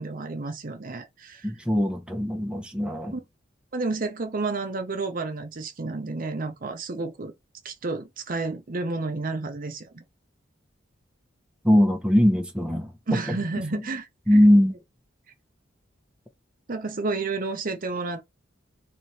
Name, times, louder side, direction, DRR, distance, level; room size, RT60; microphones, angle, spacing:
voice 1, 0.0-1.5 3.1-3.2 3.7-7.3 7.6-10.0 13.1-14.5 16.7-18.2, right 3 dB, 45° right, 0.7 m, -31 dB
voice 2, 1.4-3.1 11.6-12.9 13.7-13.8 14.3-14.7, left 1 dB, 5° right, 0.8 m, -20 dB
3.2 x 3.0 x 4.1 m
head